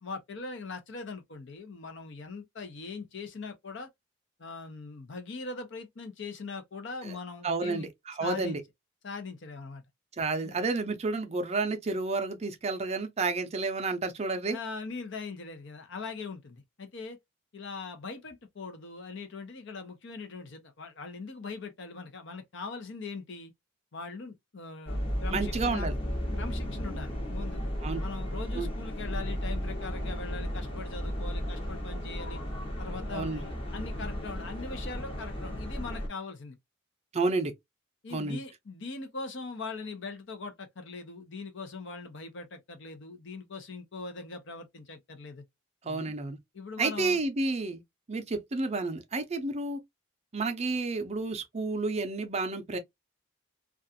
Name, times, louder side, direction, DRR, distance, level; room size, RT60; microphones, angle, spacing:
voice 1, 0.0-3.9 4.4-7.9 8.2-8.6 9.0-9.8 10.4-10.6 14.5-17.2 17.5-23.5 23.9-25.9 26.3-27.6 28.0-32.4 32.8-36.6 38.0-45.4 45.8-46.1 46.5-47.2, left 4 dB, 60° left, 0.7 m, -41 dB
voice 2, 7.4-8.6 10.2-14.6 25.3-25.9 27.8-28.0 28.5-28.7 33.1-33.4 37.1-37.5 38.1-38.4 45.8-46.4 46.8-47.8 48.1-49.8 50.3-52.8, right 3 dB, 30° right, 0.5 m, -30 dB
sound 1, 24.9-36.1, equal, 25° left, 0.8 m, -34 dB
2.4 x 2.3 x 2.6 m
head